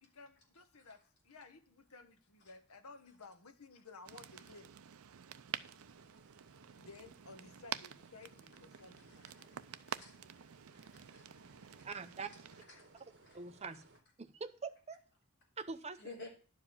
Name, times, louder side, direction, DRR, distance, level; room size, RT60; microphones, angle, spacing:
voice 1, 0.0-4.8 6.8-9.6 12.7-12.8, left 3 dB, 80° left, 1.1 m, -56 dB
sound 1, 4.0-12.6, right 9 dB, 75° right, 0.5 m, -49 dB
sound 2, 5.5-14.0, right 3 dB, 55° right, 1.7 m, -64 dB
voice 2, 9.0-10.4 10.7-11.9 12.8-12.9 13.3-13.4 16.0-16.3, left 2 dB, 55° left, 3.5 m, -55 dB
voice 3, 11.8-12.3 13.3-13.8 14.2-15.0 15.6-16.3, right 4 dB, 30° right, 0.7 m, -44 dB
11.0 x 4.9 x 7.1 m
head